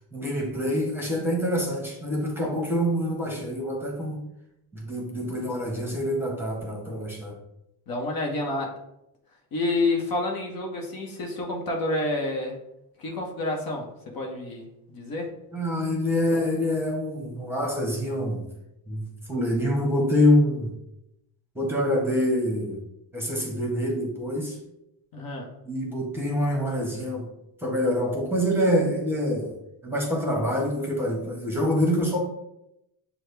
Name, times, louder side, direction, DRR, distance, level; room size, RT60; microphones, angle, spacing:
voice 1, 0.1-4.2 4.7-7.3 15.5-18.4 18.9-20.7 21.5-22.8 23.1-24.6 25.7-27.3 27.6-29.6 29.8-32.2, equal, 5° right, -1 dB, 1.2 m, -26 dB
voice 2, 7.9-8.8 9.5-12.6 13.0-13.9 14.1-15.3 25.1-25.5, left 2 dB, 50° left, 0 dB, 1.1 m, -29 dB
6.2 x 2.3 x 3.4 m, 0.85 s
supercardioid pair, 95°, 43 cm